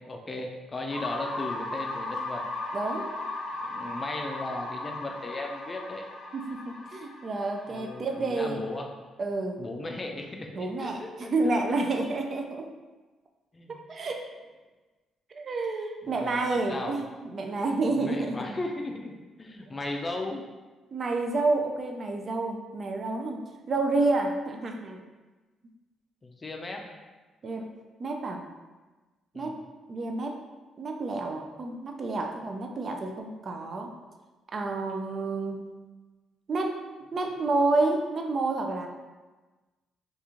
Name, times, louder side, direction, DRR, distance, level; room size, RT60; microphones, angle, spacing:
voice 1, 0.1-2.4 3.6-6.0 7.7-8.9 9.6-11.5 12.0-12.1 13.5-13.8 16.2-17.0 17.9-20.4 26.2-26.8 29.3-29.5, left 2 dB, 30° left, 2 dB, 0.4 m, -36 dB
sound 1, 0.9-8.8, left 2 dB, 70° left, 0.8 m, -37 dB
voice 2, 2.7-3.2 6.3-8.6 9.2-9.6 10.6-12.7 13.7-14.2 15.3-18.6 20.9-23.4 23.7-25.0 27.4-27.7 28.0-28.5 29.3-29.6 29.9-30.4 30.8-33.9 34.5-35.8 36.5-36.8 37.1-38.9, right 3 dB, 45° right, 3 dB, 0.4 m, -29 dB
2.9 x 2.4 x 3.7 m, 1.3 s
cardioid pair, 90°, 0 cm